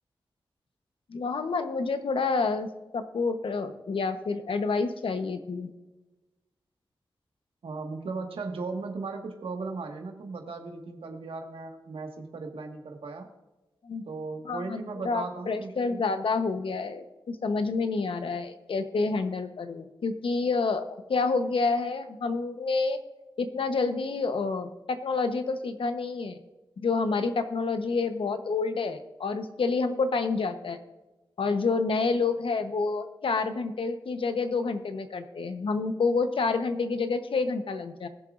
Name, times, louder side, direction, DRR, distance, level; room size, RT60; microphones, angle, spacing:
voice 1, 1.1-2.7 2.9-5.7 13.8-14.0 14.4-23.0 23.4-26.4 26.8-30.8 31.4-38.1, left 4 dB, 75° left, 8 dB, 1.0 m, -28 dB
voice 2, 7.6-13.3 14.0-16.0, right 3 dB, 90° right, 3 dB, 1.7 m, -37 dB
20.5 x 7.0 x 2.5 m, 1.1 s
wide cardioid pair, 110°, 9 cm